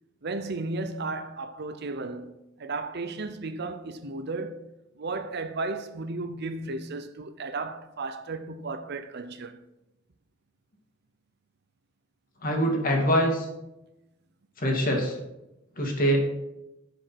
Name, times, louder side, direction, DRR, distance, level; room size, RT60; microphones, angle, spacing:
voice 1, 0.2-4.7 5.0-9.6, right 3 dB, 55° right, 0.7 m, -34 dB
voice 2, 12.4-13.5 14.6-15.2 15.8-16.2, equal, 45° left, 2.2 m, -24 dB
10.5 x 5.1 x 5.9 m
head